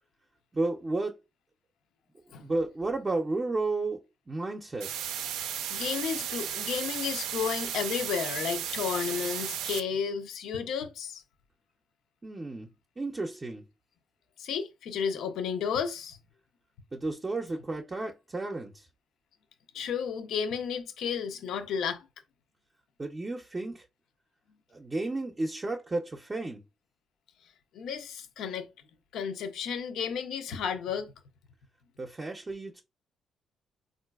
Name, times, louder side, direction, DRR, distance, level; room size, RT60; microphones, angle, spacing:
voice 1, 0.5-1.2 2.4-4.0 4.3-5.0 12.2-12.7 13.0-13.6 16.9-18.9 23.0-23.9 24.7-26.6 32.0-32.8, right 2 dB, 25° right, 0.5 m, -32 dB
sound 1, 4.8-9.8, right 9 dB, 90° right, 0.3 m, -34 dB
voice 2, 5.7-11.2 14.4-16.2 19.7-22.0 27.7-28.7 29.1-31.1, left 7 dB, 80° left, 0.5 m, -32 dB
3.8 x 2.4 x 2.3 m
cardioid pair, 90°, 0 cm